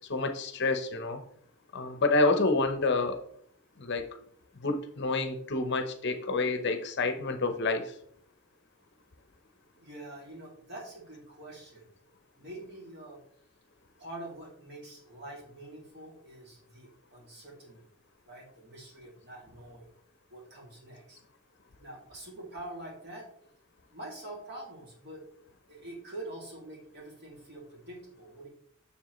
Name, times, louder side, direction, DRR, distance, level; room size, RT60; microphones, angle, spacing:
voice 1, 0.1-1.2 1.7-3.2 3.8-4.1 4.6-7.9, left 3 dB, 50° left, 7 dB, 0.7 m, -28 dB
voice 2, 9.8-11.9 12.4-13.2 14.0-17.8 18.3-19.9 20.3-21.2 21.8-23.3 23.9-25.2 25.7-28.5, right 1 dB, 50° right, -1 dB, 2.4 m, -45 dB
7.4 x 6.7 x 3.0 m, 0.64 s
head